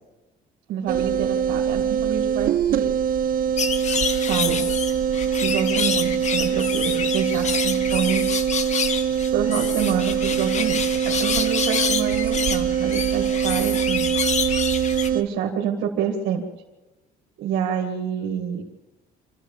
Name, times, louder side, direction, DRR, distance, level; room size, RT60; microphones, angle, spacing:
voice 1, 0.7-2.9 4.3-4.7 5.3-8.2 9.3-14.1 15.1-16.4 17.4-18.6, right 8 dB, 80° right, 0 dB, 2.2 m, -27 dB
sound 1, 0.9-15.2, right 8 dB, 55° right, 0.7 m, -23 dB
sound 2, 3.6-15.1, left 6 dB, 45° left, 1.6 m, -28 dB
26.5 x 13.5 x 7.3 m, 1.1 s
cardioid pair, 110°, 17 cm